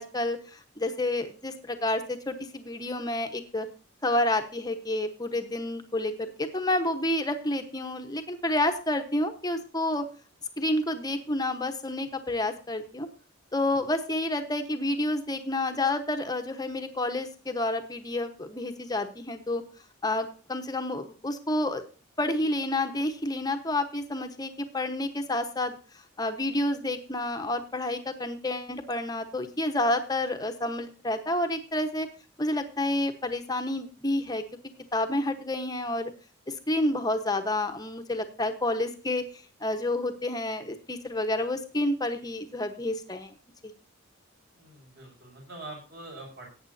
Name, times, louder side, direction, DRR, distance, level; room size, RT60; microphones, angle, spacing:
voice 1, 0.0-3.7 4.0-10.1 10.6-13.1 13.5-19.6 20.0-21.8 22.2-25.8 26.2-32.1 32.4-34.4 34.9-36.1 36.5-39.3 39.6-43.3 43.6-43.7, left 1 dB, 20° left, 6 dB, 1.1 m, -29 dB
voice 2, 44.5-46.5, right 2 dB, 45° right, 0 dB, 5.9 m, -44 dB
18.0 x 8.9 x 2.7 m, 0.35 s
head